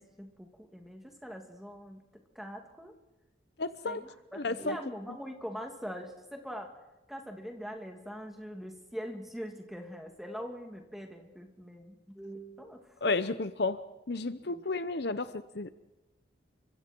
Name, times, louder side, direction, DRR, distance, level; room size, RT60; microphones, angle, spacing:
voice 1, 0.0-2.0 2.3-3.0 3.8-6.7 7.1-12.8 14.5-14.6, equal, ahead, 3 dB, 2.7 m, -43 dB
voice 2, 3.6-4.0 4.3-4.8 13.0-13.8 14.1-15.8, left 3 dB, 55° left, 13 dB, 0.8 m, -32 dB
29.0 x 25.0 x 4.6 m, 1.0 s
head